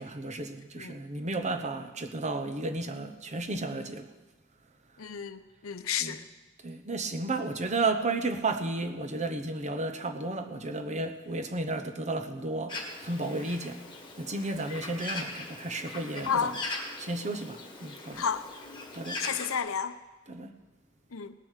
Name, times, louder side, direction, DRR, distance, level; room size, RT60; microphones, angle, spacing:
voice 1, 0.0-4.1 6.0-6.2 6.6-12.8 13.0-13.8 14.2-16.5 17.0-18.2 18.9-19.2 20.3-20.5, right 2 dB, 35° right, 8 dB, 0.9 m, -33 dB
voice 2, 5.0-6.2 16.3-16.5 18.2-18.9 19.2-19.9 21.1-21.3, left 7 dB, 70° left, 11 dB, 0.7 m, -32 dB
Bird, 12.7-19.6, left 2 dB, 25° left, 1.7 m, -40 dB
18.5 x 7.1 x 6.5 m, 1.2 s
head